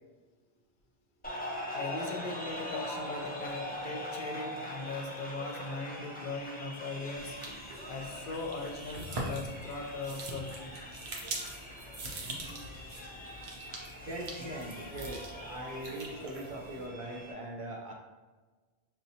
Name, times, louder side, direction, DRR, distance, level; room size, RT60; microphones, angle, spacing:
sound 1, 1.2-17.3, equal, 15° left, 0.3 m, -42 dB
voice 1, 1.7-7.4 7.9-10.8, left 3 dB, 60° left, 3 dB, 0.6 m, -39 dB
sound 2, 7.2-16.9, right 2 dB, 70° right, 1.0 m, -43 dB
voice 2, 14.0-17.9, right 1 dB, 55° right, -1 dB, 0.7 m, -41 dB
5.6 x 2.8 x 2.7 m, 1.3 s
omnidirectional pair, 1.1 m